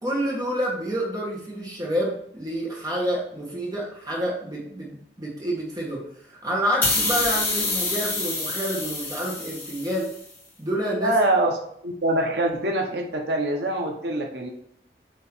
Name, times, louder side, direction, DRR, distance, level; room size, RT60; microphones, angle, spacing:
voice 1, 0.0-10.1 10.6-11.2, equal, 20° right, -3 dB, 1.3 m, -28 dB
sound 1, 6.8-10.2, left 2 dB, 10° left, 1.6 m, -27 dB
voice 2, 11.0-11.6 11.8-14.5, right 1 dB, 70° right, 2 dB, 1.0 m, -24 dB
7.7 x 3.0 x 4.4 m, 0.70 s
head